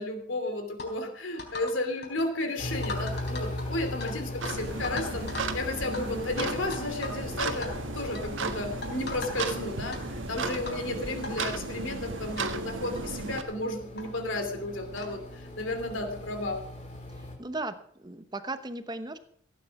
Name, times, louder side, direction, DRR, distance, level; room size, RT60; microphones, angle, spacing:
voice 1, 0.0-16.6, left 2 dB, 85° left, 6 dB, 2.8 m, -33 dB
sound 1, 0.8-0.9 1.4-1.8 2.0-2.2 2.8-4.1 4.4-4.5 4.8-5.5 5.9-6.0 6.4-7.2 7.5-7.7 8.1-8.3 8.8-9.6 9.9-10.0 10.7-10.8 11.2-11.3 12.1-12.2 12.4-12.5 12.9-13.1 14.0-14.1 15.0-15.2, left 3 dB, 60° left, 3.9 m, -38 dB
sound 2, 2.6-17.3, left 1 dB, 40° left, 3.5 m, -40 dB
sound 3, 4.4-13.4, right 3 dB, 80° right, 1.4 m, -35 dB
voice 2, 17.1-19.2, right 2 dB, 20° right, 10 dB, 1.0 m, -37 dB
16.0 x 9.5 x 5.9 m, 0.63 s
head